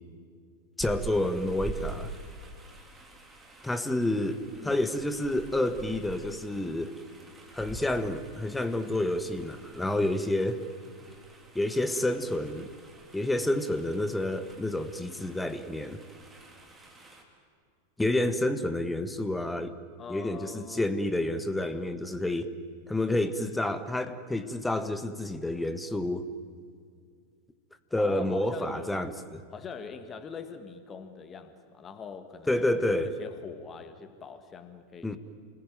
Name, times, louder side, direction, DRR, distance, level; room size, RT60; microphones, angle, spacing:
voice 1, 0.8-2.1 3.6-6.9 7.5-10.6 11.5-12.7 13.1-16.0 18.0-19.7 20.1-22.5 22.9-26.3 27.9-29.4 32.5-33.1 35.0-35.2, left 1 dB, 5° left, 11 dB, 1.5 m, -29 dB
sound 1, 0.8-17.2, right 4 dB, 15° right, 3.7 m, -46 dB
voice 2, 20.0-20.9 28.0-29.0 29.5-35.2, left 6 dB, 25° left, 9 dB, 1.8 m, -43 dB
29.0 x 21.0 x 9.3 m, 2.1 s
figure-of-eight pair, 90°, 0 cm